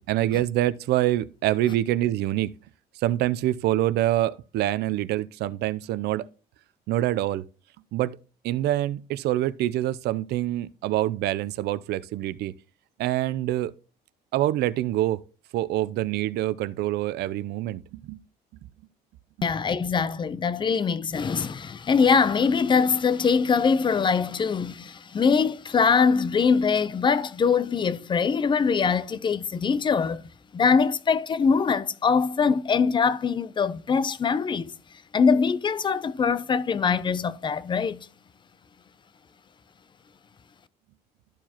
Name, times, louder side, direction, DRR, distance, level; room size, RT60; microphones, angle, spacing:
voice 1, 0.0-2.5 3.0-6.3 6.9-7.4 7.9-8.2 8.4-12.5 13.0-13.7 14.3-15.2 15.5-18.2, right 14 dB, 75° right, 0.5 m, -25 dB
voice 2, 19.4-34.7 35.1-38.1, left 5 dB, 30° left, 0.5 m, -23 dB
13.5 x 4.6 x 2.9 m
cardioid pair, 110°, 17 cm